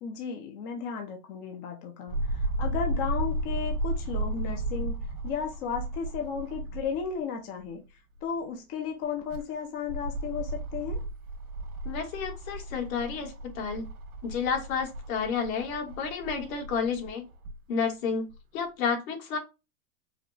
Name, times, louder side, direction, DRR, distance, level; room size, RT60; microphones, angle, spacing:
voice 1, 0.0-5.0 5.2-7.8 8.2-11.0, left 6 dB, 25° left, 0.5 m, -34 dB
sound 1, 2.1-7.1 7.6-7.7 9.0-17.6 18.3-18.4, right 1 dB, 75° right, 1.6 m, -34 dB
voice 2, 11.8-13.9 14.2-17.2 17.7-18.3 18.5-19.4, left 6 dB, 65° left, 1.5 m, -31 dB
4.8 x 2.2 x 2.5 m
supercardioid pair, 150°, 44 cm